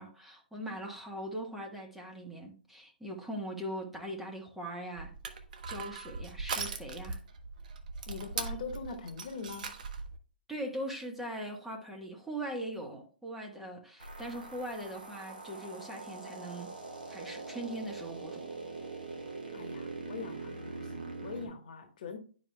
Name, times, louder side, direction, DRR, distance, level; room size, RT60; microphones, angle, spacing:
voice 1, 0.0-5.1 5.7-7.2 10.5-16.7 17.1-18.5, right 1 dB, 5° right, 1.2 m, -40 dB
Crushing, 4.9-10.2, right 4 dB, 55° right, 0.9 m, -40 dB
voice 2, 8.1-9.7 19.5-22.2, left 5 dB, 55° left, 1.3 m, -42 dB
sound 1, 14.0-21.5, right 3 dB, 75° right, 1.7 m, -43 dB
10.5 x 4.7 x 2.2 m
figure-of-eight pair, 120°, 5 cm